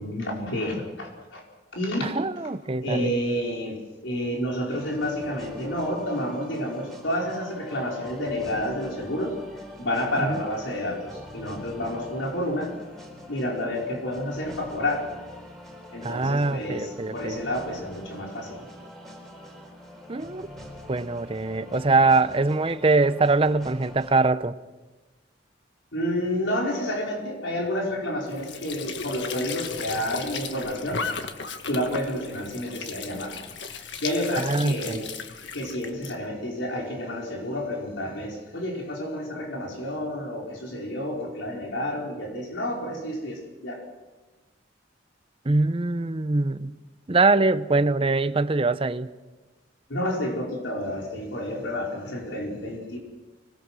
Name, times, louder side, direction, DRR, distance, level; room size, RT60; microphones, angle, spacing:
voice 1, 0.0-1.4 1.7-2.1 2.8-3.8 4.0-12.7 13.3-15.1 15.9-18.6 25.9-31.0 31.7-33.4 34.0-35.1 35.5-43.8 49.9-53.0, left 1 dB, 90° left, 5.0 m, -30 dB
voice 2, 2.0-3.1 10.2-10.4 16.0-17.4 20.1-20.5 20.9-24.5 34.4-35.0 45.4-46.7 47.1-49.1, right 3 dB, 30° right, 0.7 m, -23 dB
sound 1, 4.7-24.2, equal, ahead, 3.8 m, -44 dB
Squeak / Sink (filling or washing) / Trickle dribble, 28.3-36.2, left 5 dB, 70° left, 1.6 m, -36 dB
26.0 x 20.5 x 6.3 m
head